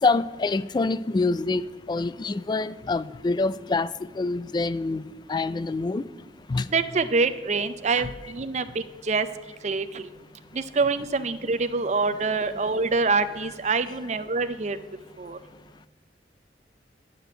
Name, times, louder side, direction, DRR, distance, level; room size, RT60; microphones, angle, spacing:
voice 1, 0.0-1.6 1.9-3.9 4.2-5.0 5.3-6.0 6.5-6.7 8.0-8.1 13.4-13.5, left 3 dB, 25° left, 16 dB, 0.3 m, -26 dB
voice 2, 6.7-9.3 9.6-10.0 10.5-14.8 15.2-15.4, right 4 dB, 40° right, 11 dB, 0.5 m, -25 dB
11.0 x 5.0 x 7.7 m, 1.1 s
head